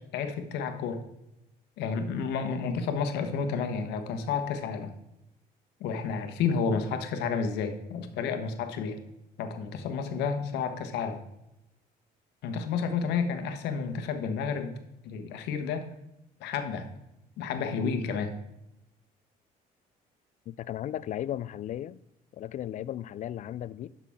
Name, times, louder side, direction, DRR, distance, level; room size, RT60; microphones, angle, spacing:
voice 1, 0.1-1.0 1.8-4.9 5.8-9.0 9.4-11.2 12.4-14.7 15.0-15.8 16.4-16.9 17.4-18.3, left 5 dB, 90° left, 1.2 m, -31 dB
voice 2, 20.5-22.0 22.3-23.9, left 11 dB, 50° left, 0.4 m, -35 dB
11.5 x 5.8 x 3.6 m
cardioid pair, 110°, 17 cm